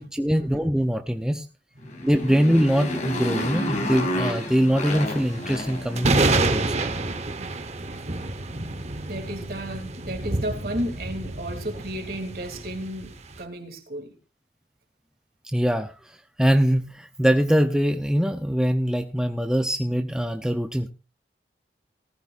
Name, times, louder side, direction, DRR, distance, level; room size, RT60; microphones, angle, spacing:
voice 1, 0.0-1.5 2.0-6.9 15.5-16.0 16.4-20.9, equal, 5° right, 0.7 m, -23 dB
Motorcycle, 1.8-6.5, left 1 dB, 40° left, 3.0 m, -30 dB
sound 1, 4.9-13.4, right 2 dB, 40° right, 1.1 m, -28 dB
voice 2, 9.1-14.1, right 1 dB, 55° right, 3.1 m, -33 dB
19.0 x 14.5 x 2.6 m
head